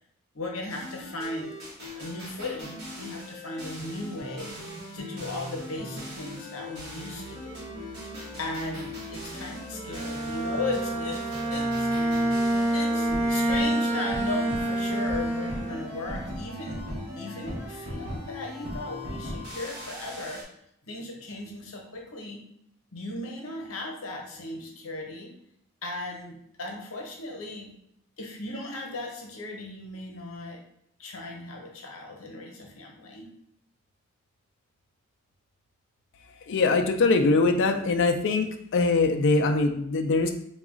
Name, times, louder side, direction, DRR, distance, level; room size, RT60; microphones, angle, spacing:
voice 1, 0.3-1.6 1.9-4.5 4.9-7.7 8.4-12.2 12.7-16.8 17.1-20.4 20.8-22.4 22.9-25.3 25.8-27.7 28.2-30.6 31.0-33.3, left 2 dB, 90° left, 0 dB, 0.9 m, -37 dB
sound 1, 0.7-20.4, equal, 55° right, 1.4 m, -39 dB
Bowed string instrument, 9.9-15.9, right 1 dB, 30° right, 0.4 m, -27 dB
voice 2, 36.5-38.5 38.7-40.3, left 3 dB, 60° left, 5 dB, 0.4 m, -22 dB
3.9 x 2.3 x 3.7 m, 0.73 s
head